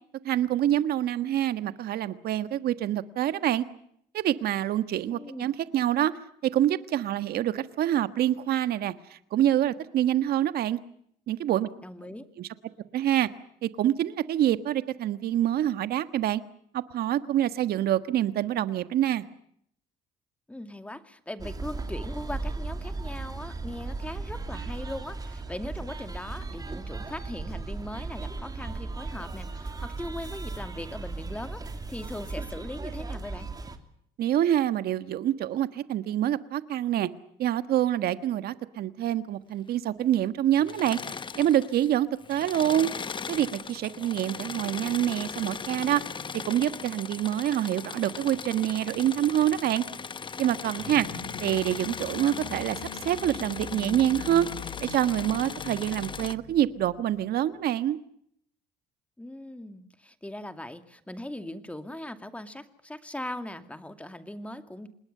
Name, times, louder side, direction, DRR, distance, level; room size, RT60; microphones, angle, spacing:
voice 1, 0.2-3.6 4.1-6.1 6.5-10.8 11.3-11.7 12.4-12.5 12.9-13.3 13.6-16.4 16.7-19.2 34.2-37.1 37.4-41.0 41.3-42.9 43.3-46.0 46.4-49.8 50.4-51.1 51.4-52.8 53.0-54.5 54.8-58.0, right 12 dB, 65° right, 1.5 m, -26 dB
voice 2, 5.1-5.5 11.8-12.2 20.5-33.5 50.8-51.2 59.2-64.9, left 1 dB, 5° left, 2.4 m, -39 dB
sound 1, 21.4-33.8, right 3 dB, 20° right, 3.0 m, -36 dB
Engine / Mechanisms, 40.6-41.9 42.2-56.4, left 5 dB, 30° left, 1.0 m, -38 dB
sound 2, 50.7-57.2, left 6 dB, 75° left, 3.4 m, -42 dB
27.5 x 20.5 x 6.8 m
cardioid pair, 110°, 17 cm